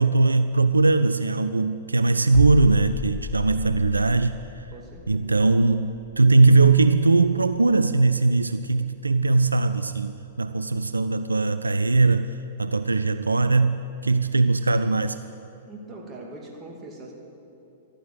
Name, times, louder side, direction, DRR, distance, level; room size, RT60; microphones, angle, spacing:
voice 1, 0.0-4.7 5.1-12.3 12.6-15.2, right 3 dB, 80° right, 11 dB, 0.3 m, -20 dB
sound 1, 2.3-8.0 8.3-8.5, left 7 dB, 25° left, 0.6 m, -35 dB
voice 2, 4.7-5.3 15.7-17.1, right 2 dB, 25° right, 0 dB, 2.4 m, -41 dB
12.5 x 9.2 x 8.2 m, 2.7 s
figure-of-eight pair, 105°, 0 cm